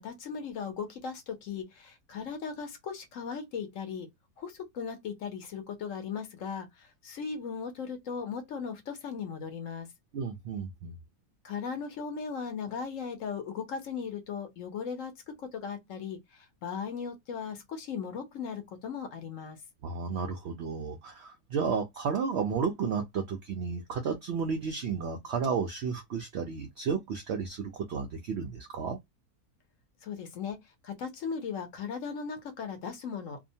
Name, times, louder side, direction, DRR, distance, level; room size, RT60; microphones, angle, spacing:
voice 1, 0.0-4.1 4.4-9.9 11.4-15.1 15.4-19.6 30.0-33.4, left 6 dB, 60° left, 0.9 m, -37 dB
voice 2, 10.1-10.9 19.8-29.0, right 5 dB, 80° right, 0.6 m, -32 dB
2.8 x 2.1 x 2.6 m
omnidirectional pair, 1.7 m